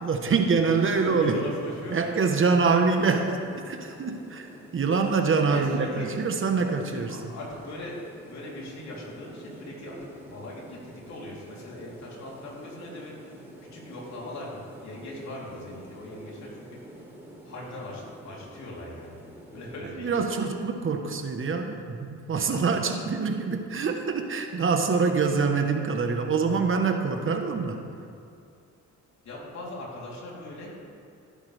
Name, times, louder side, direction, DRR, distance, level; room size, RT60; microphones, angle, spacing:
voice 1, 0.0-1.5 1.9-3.3 3.7-7.2 20.0-27.8, right 4 dB, 45° right, 5 dB, 1.2 m, -25 dB
sound 1, 0.7-19.8, right 1 dB, 10° right, 3.1 m, -48 dB
voice 2, 1.0-2.0 2.6-2.7 5.5-6.1 6.9-7.0 7.3-8.0 8.3-13.4 13.7-17.1 17.4-19.2 19.5-20.2 29.2-30.8, left 1 dB, 65° left, -4 dB, 3.4 m, -40 dB
16.0 x 10.5 x 3.4 m, 2.5 s
cardioid pair, 90°, 30 cm